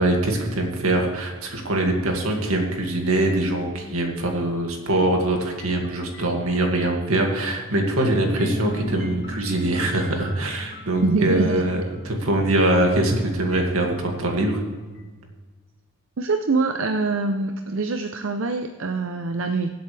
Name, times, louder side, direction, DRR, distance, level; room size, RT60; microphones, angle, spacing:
voice 1, 0.0-14.6, right 1 dB, 85° right, 1 dB, 2.2 m, -23 dB
sound 1, 5.6-7.8 8.4-12.7 13.5-15.3, left 1 dB, 50° left, 2.1 m, -40 dB
voice 2, 11.0-11.6 16.2-19.7, right 3 dB, 65° right, 6 dB, 0.6 m, -24 dB
23.5 x 7.9 x 3.3 m, 1.3 s
head